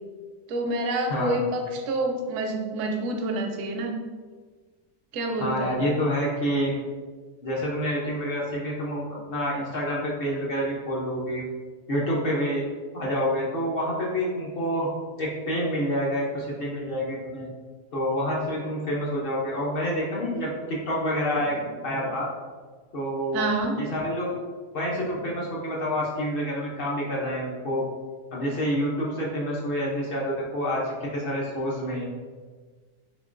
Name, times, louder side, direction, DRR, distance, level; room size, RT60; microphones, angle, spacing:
voice 1, 0.5-4.0 5.1-5.8 23.3-23.8, right 2 dB, 70° right, 3 dB, 0.8 m, -28 dB
voice 2, 5.4-6.7 7.4-11.4 11.9-12.7 12.9-14.9 15.2-17.5 17.9-22.3 22.9-23.4 23.8-24.4 24.7-27.8 28.3-32.1, equal, 55° left, -4 dB, 0.6 m, -28 dB
3.7 x 3.6 x 2.5 m, 1.5 s
omnidirectional pair, 1.6 m